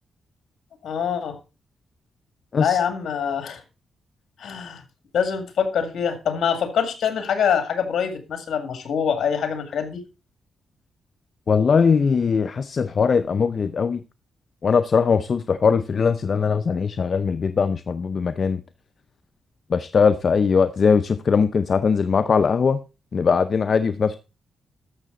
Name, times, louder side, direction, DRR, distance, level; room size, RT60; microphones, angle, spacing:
voice 1, 0.8-1.4 2.6-3.6 4.4-4.8 5.1-10.0, left 7 dB, 70° left, 2.2 m, -24 dB
voice 2, 11.5-14.0 14.6-18.6 19.7-22.8 23.1-24.2, left 5 dB, 50° left, 0.5 m, -20 dB
12.5 x 6.7 x 3.8 m
cardioid pair, 85°, 0 cm